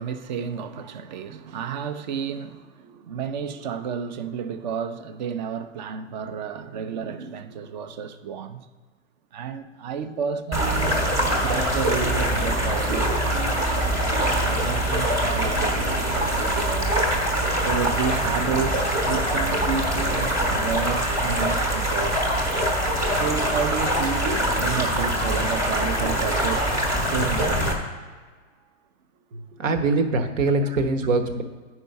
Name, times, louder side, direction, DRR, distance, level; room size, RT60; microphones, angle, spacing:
voice 1, 0.0-8.7 9.3-11.0 11.4-13.8 14.4-16.9 17.6-22.2 23.2-28.1 30.6-30.8, right 7 dB, 35° right, 0.5 m, -31 dB
sound 1, 10.5-27.7, right 1 dB, 10° right, 1.0 m, -23 dB
voice 2, 29.6-31.4, right 3 dB, 75° right, 1.2 m, -22 dB
9.7 x 4.8 x 5.3 m
hypercardioid pair, 150°, 38 cm